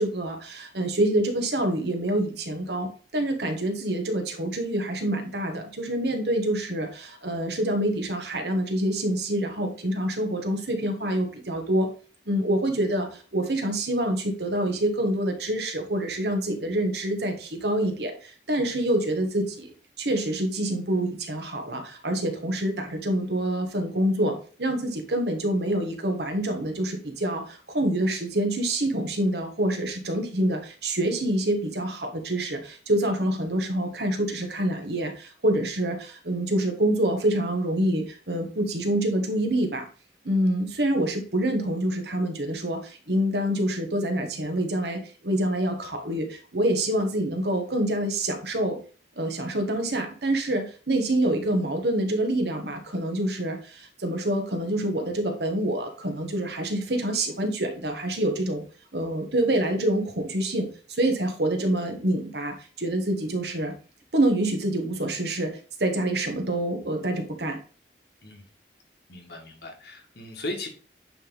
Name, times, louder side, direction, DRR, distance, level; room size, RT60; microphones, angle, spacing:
voice 1, 0.0-11.9 12.3-19.7 20.0-39.9 40.2-48.8 49.2-58.6 58.9-63.7 64.1-67.6, right 1 dB, 70° right, 4 dB, 1.4 m, -26 dB
voice 2, 69.1-70.7, left 1 dB, 65° left, 3 dB, 1.7 m, -37 dB
8.7 x 3.5 x 3.9 m, 0.38 s
head